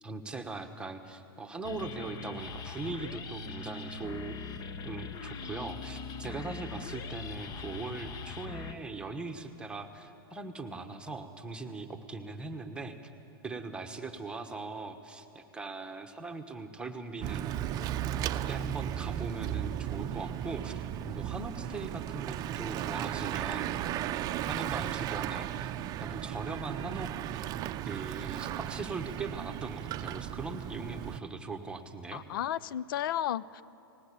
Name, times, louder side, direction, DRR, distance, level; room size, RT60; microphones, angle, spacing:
voice 1, 0.0-4.4 4.8-13.1 13.4-17.6 18.5-23.7 24.5-25.7 26.0-27.5 27.8-32.2, right 3 dB, 10° right, 5 dB, 1.3 m, -40 dB
sound 1, 1.6-8.8, left 5 dB, 30° left, 1.2 m, -41 dB
Bicycle / Mechanisms, 17.2-31.2, right 11 dB, 30° right, 0.7 m, -35 dB
voice 2, 32.1-33.6, left 11 dB, 65° left, 20 dB, 0.6 m, -33 dB
19.5 x 18.0 x 8.5 m, 2.8 s
hypercardioid pair, 125°, 13 cm